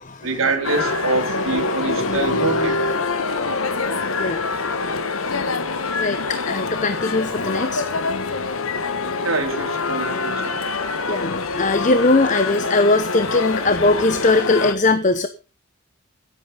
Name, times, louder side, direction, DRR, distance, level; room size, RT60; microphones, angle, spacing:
voice 1, 0.2-2.8 4.7-4.8 9.2-10.6, right 3 dB, 85° right, 3.7 m, -25 dB
sound 1, 0.6-14.7, left 3 dB, 85° left, 1.5 m, -25 dB
voice 2, 1.7-2.7 4.2-4.4 5.9-7.8 11.1-15.3, left 2 dB, 35° left, 0.8 m, -20 dB
15.0 x 8.6 x 5.7 m
head